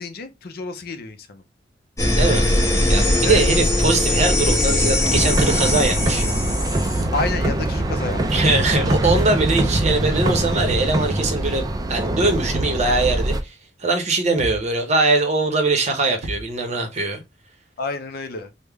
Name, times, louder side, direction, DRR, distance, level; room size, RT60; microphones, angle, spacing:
voice 1, 0.0-1.4 3.2-3.4 7.1-8.6 17.8-18.5, left 3 dB, 55° left, 0.5 m, -29 dB
sound 1, 2.0-7.0, left 1 dB, 15° left, 1.0 m, -20 dB
voice 2, 2.0-2.4 2.9-6.2 8.3-13.5 13.8-17.2, right 3 dB, 40° right, 0.8 m, -21 dB
Thump thud, 3.3-3.6 5.1-5.5 7.0-7.3 8.8-9.2 10.7-11.0 12.5-12.9 14.4-14.7 16.2-16.6, equal, 75° right, 0.6 m, -29 dB
sound 2, 5.0-13.4, right 1 dB, 20° right, 0.3 m, -23 dB
3.4 x 2.1 x 3.4 m
head